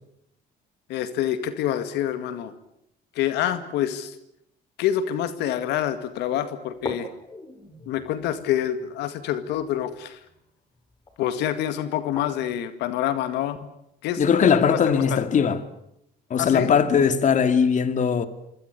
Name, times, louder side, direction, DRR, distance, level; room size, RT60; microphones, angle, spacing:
voice 1, 0.9-2.5 3.2-4.2 4.8-7.1 7.9-10.2 11.2-13.6 14.0-15.2 16.4-16.7, left 11 dB, 85° left, 2.0 m, -27 dB
sound 1, 5.6-5.7 6.1-6.2 6.7-12.7, left 2 dB, 25° left, 5.3 m, -42 dB
voice 2, 14.2-15.6 16.3-18.3, left 7 dB, 45° left, 2.5 m, -20 dB
26.0 x 24.0 x 8.3 m
cardioid pair, 110°, 17 cm